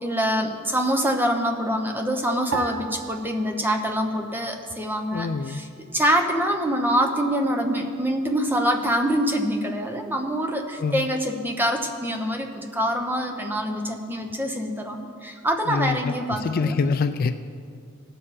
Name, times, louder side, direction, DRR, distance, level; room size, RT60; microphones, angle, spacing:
voice 1, 0.0-5.7 5.9-16.7, equal, 10° right, 3 dB, 0.9 m, -25 dB
sound 1, 2.5-5.0 5.3-6.2 6.8-7.2, right 6 dB, 65° right, 0.6 m, -37 dB
voice 2, 5.1-5.6 10.8-11.1 15.7-17.3, left 4 dB, 45° left, 10 dB, 0.3 m, -25 dB
17.5 x 6.9 x 4.3 m, 2.2 s
head